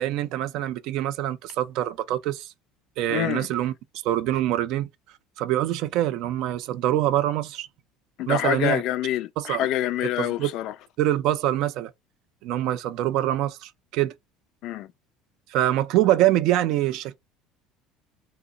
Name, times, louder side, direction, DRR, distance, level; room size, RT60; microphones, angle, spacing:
voice 1, 0.0-2.5 3.0-3.7 4.0-4.9 5.4-7.7 8.3-8.8 9.4-9.7 10.2-10.5 11.0-11.9 12.4-14.1 15.5-17.2, right 13 dB, 65° right, 0.4 m, -24 dB
voice 2, 3.1-3.5 8.2-10.7 14.6-14.9, left 13 dB, 65° left, 0.3 m, -26 dB
2.8 x 2.0 x 3.7 m
supercardioid pair, 90°, 0 cm